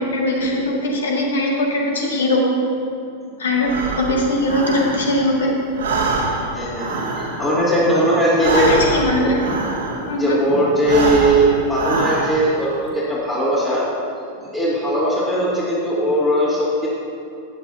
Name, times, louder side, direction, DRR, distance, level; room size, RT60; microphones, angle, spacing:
voice 1, 0.0-2.4 3.4-3.7 4.0-5.5 8.5-9.4 10.1-10.4, left 1 dB, 65° left, -2 dB, 1.9 m, -20 dB
Breathing, 3.6-5.4 5.7-10.3 10.7-12.7, right 3 dB, 65° right, 1.6 m, -25 dB
voice 2, 6.5-8.7 9.1-9.3 10.2-13.8 14.5-16.9, right 1 dB, 20° left, -10 dB, 2.4 m, -19 dB
14.0 x 9.1 x 2.8 m, 2.6 s
figure-of-eight pair, 90°, 0 cm